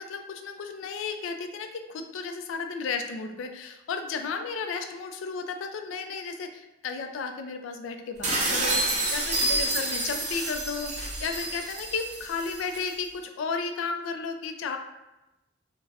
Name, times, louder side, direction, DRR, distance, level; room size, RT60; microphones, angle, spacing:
voice 1, 0.0-14.8, left 5 dB, 85° left, 6 dB, 0.3 m, -33 dB
sound 1, 8.2-12.9, right 2 dB, 35° right, 0.5 m, -29 dB
2.3 x 2.1 x 3.3 m, 0.96 s
head